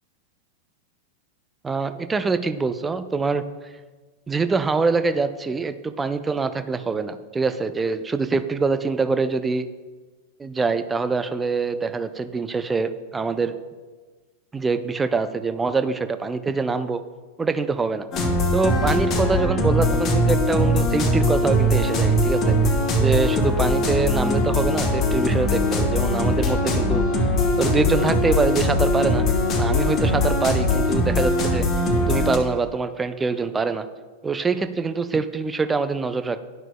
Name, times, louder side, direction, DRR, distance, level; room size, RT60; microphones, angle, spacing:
voice 1, 1.6-3.4 4.3-9.7 10.4-13.5 14.5-17.0 17.4-18.1 18.5-22.6 23.0-27.3 27.6-29.3 29.5-31.7 32.1-33.9 34.2-36.4, right 4 dB, 15° right, 11 dB, 0.4 m, -24 dB
sound 1, 18.1-32.4, left 1 dB, 30° left, 1.2 m, -21 dB
11.0 x 5.9 x 2.2 m, 1.4 s
figure-of-eight pair, 90°, 0 cm